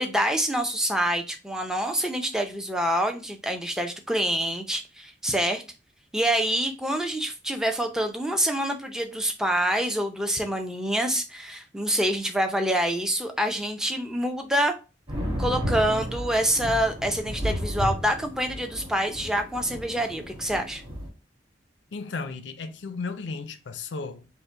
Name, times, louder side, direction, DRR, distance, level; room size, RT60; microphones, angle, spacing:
voice 1, 0.0-5.6 6.1-14.7 15.4-20.8, right 1 dB, 5° right, 0.6 m, -26 dB
sound 1, 15.1-21.1, equal, 30° right, 2.1 m, -33 dB
voice 2, 21.9-24.3, left 4 dB, 75° left, 0.5 m, -34 dB
5.4 x 2.2 x 4.4 m
head